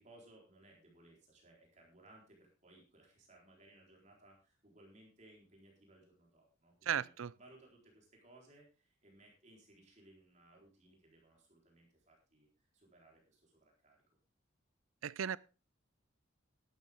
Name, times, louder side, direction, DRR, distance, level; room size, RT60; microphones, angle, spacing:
voice 1, 0.0-7.1 7.3-14.0, right 1 dB, 35° right, 4.1 m, -63 dB
voice 2, 6.9-7.3 15.0-15.4, right 8 dB, 90° right, 0.5 m, -36 dB
12.5 x 12.0 x 3.6 m
head